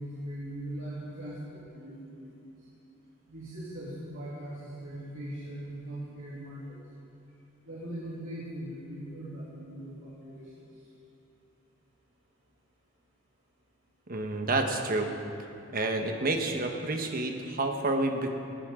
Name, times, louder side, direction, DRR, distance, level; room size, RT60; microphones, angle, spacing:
voice 1, 0.0-2.3 3.3-6.8 7.7-10.5, right 1 dB, 80° right, -9 dB, 3.2 m, -40 dB
voice 2, 14.1-15.1 15.7-18.3, right 2 dB, 50° right, 4 dB, 1.3 m, -29 dB
19.0 x 15.5 x 3.8 m, 2.7 s
head